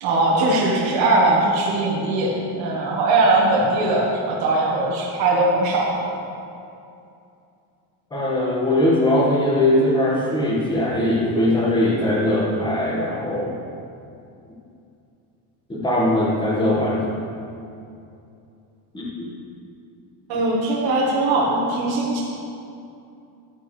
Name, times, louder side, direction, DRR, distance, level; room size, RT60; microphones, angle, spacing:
voice 1, 0.0-6.0 20.3-22.2, right 2 dB, 50° right, -4 dB, 1.6 m, -20 dB
voice 2, 8.1-13.6 15.7-17.2 18.9-19.3, left 1 dB, 10° left, -5 dB, 1.6 m, -20 dB
12.0 x 9.3 x 3.3 m, 2.6 s
cardioid pair, 165°, 45 cm